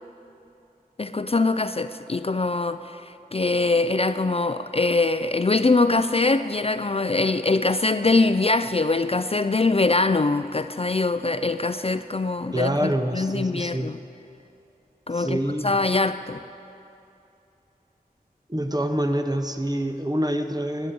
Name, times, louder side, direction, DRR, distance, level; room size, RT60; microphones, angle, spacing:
voice 1, 1.0-14.0 15.1-16.4, left 3 dB, 40° left, 11 dB, 0.4 m, -23 dB
voice 2, 12.5-13.9 15.1-15.8 18.5-20.9, right 1 dB, 25° right, 7 dB, 0.9 m, -26 dB
13.0 x 9.7 x 8.7 m, 2.8 s
wide cardioid pair, 45°, 16 cm